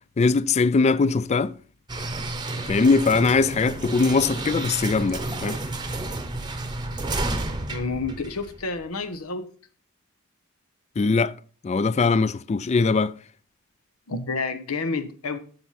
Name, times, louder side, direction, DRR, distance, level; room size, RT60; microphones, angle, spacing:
voice 1, 0.2-1.5 2.7-5.6 11.0-11.3 11.6-13.1, left 4 dB, 30° left, 0.3 m, -21 dB
sound 1, 1.9-8.9, right 2 dB, 20° right, 0.8 m, -31 dB
voice 2, 7.7-9.5 14.1-15.4, left 3 dB, 85° left, 1.0 m, -29 dB
7.8 x 7.0 x 5.7 m
head